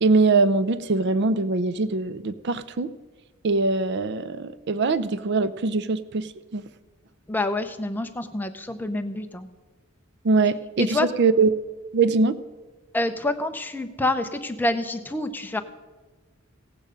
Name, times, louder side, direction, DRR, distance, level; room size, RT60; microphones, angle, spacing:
voice 1, 0.0-2.9 3.4-6.3 6.5-6.6 10.2-11.5 11.9-12.3, right 3 dB, 50° right, 15 dB, 0.5 m, -22 dB
voice 2, 7.3-9.5 10.8-11.1 12.9-15.6, left 2 dB, 10° left, 6 dB, 0.7 m, -27 dB
16.5 x 8.9 x 5.1 m, 1.2 s
head